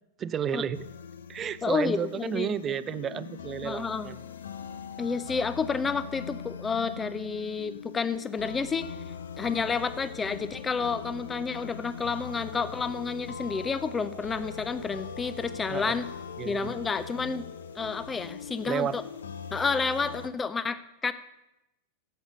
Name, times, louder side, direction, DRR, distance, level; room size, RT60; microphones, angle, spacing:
voice 1, 0.2-0.8 1.3-4.2 15.7-16.0 16.4-16.8 18.7-18.9, right 8 dB, 25° right, 17 dB, 0.5 m, -32 dB
sound 1, 0.7-20.3, left 6 dB, 65° left, 0.7 m, -41 dB
voice 2, 1.6-2.5 3.6-4.1 5.0-8.9 9.4-16.1 16.4-17.4 17.7-19.0 19.5-21.1, left 5 dB, 15° left, 14 dB, 0.7 m, -30 dB
11.0 x 8.0 x 6.6 m, 0.92 s
figure-of-eight pair, 90°, 0 cm